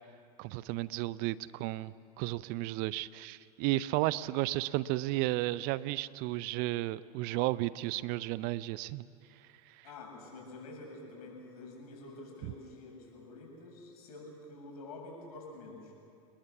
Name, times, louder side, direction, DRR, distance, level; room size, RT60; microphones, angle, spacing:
voice 1, 0.4-1.9 2.2-9.0 9.7-9.8, right 17 dB, 50° right, 18 dB, 0.6 m, -33 dB
voice 2, 9.8-15.9, left 2 dB, 65° left, -1 dB, 7.9 m, -48 dB
28.5 x 20.5 x 7.1 m, 2.5 s
hypercardioid pair, 90°, 20 cm